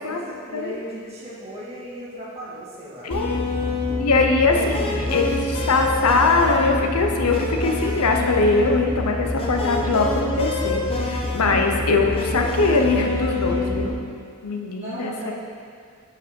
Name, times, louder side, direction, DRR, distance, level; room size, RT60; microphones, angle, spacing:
voice 1, 0.0-3.1 14.7-15.3, right 1 dB, 30° right, -8 dB, 2.0 m, -36 dB
voice 2, 3.0-3.4 4.0-13.9 14.4-15.3, left 3 dB, 85° left, 3 dB, 0.7 m, -21 dB
sound 1, 3.1-13.9, left 2 dB, 25° left, 0.8 m, -26 dB
6.8 x 5.2 x 5.2 m, 2.2 s
head